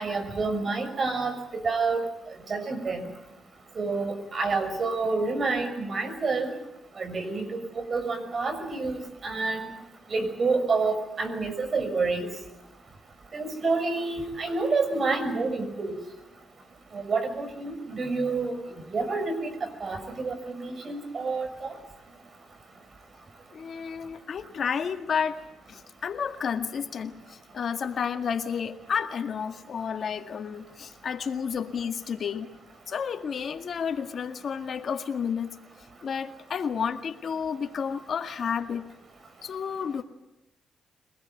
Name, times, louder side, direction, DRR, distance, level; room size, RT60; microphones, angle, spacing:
voice 1, 0.0-2.0 2.5-3.0 3.8-6.5 7.0-9.6 10.1-12.3 13.3-16.0 16.9-18.5 18.9-21.7, right 3 dB, 50° right, 9 dB, 6.1 m, -28 dB
voice 2, 23.5-32.5 32.9-35.5 36.0-38.9 39.4-40.0, left 7 dB, 60° left, 7 dB, 2.0 m, -31 dB
24.5 x 20.0 x 9.3 m, 0.89 s
cardioid pair, 75°, 0 cm